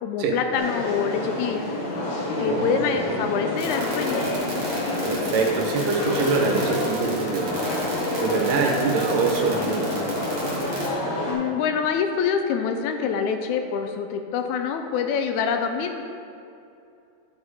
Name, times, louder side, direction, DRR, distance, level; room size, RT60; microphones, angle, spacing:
voice 1, 0.0-1.7 2.4-4.2 11.3-16.0, left 6 dB, 80° left, 6 dB, 1.7 m, -25 dB
sound 1, 0.6-11.3, left 1 dB, 60° left, 2.5 m, -27 dB
voice 2, 2.4-3.2 5.0-7.8 8.2-9.8, right 5 dB, 85° right, 1 dB, 2.6 m, -25 dB
sound 2, 3.6-10.9, right 3 dB, 50° right, 2.8 m, -37 dB
12.5 x 5.0 x 4.2 m, 2.6 s
omnidirectional pair, 3.7 m